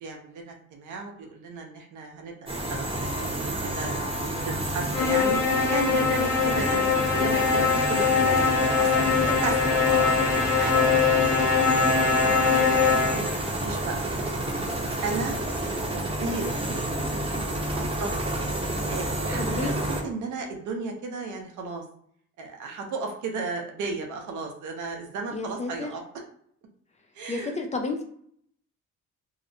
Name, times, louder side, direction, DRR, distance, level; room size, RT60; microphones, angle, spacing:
voice 1, 0.0-2.9 3.2-4.0 4.4-5.4 5.7-10.9 12.5-14.1 14.5-15.4 15.9-16.5 17.3-17.4 17.7-18.1 18.9-19.7 20.0-21.8 22.4-26.0 27.1-27.6, right 4 dB, 75° right, 2 dB, 0.7 m, -34 dB
sound 1, 2.5-20.0, right 1 dB, 20° right, 0.7 m, -30 dB
sound 2, 4.9-13.5, left 5 dB, 70° left, 0.8 m, -22 dB
voice 2, 12.2-12.7 19.4-19.8 25.3-25.9 27.3-28.0, left 3 dB, 25° left, 3 dB, 0.4 m, -32 dB
2.8 x 2.0 x 2.6 m, 0.65 s
cardioid pair, 90°, 30 cm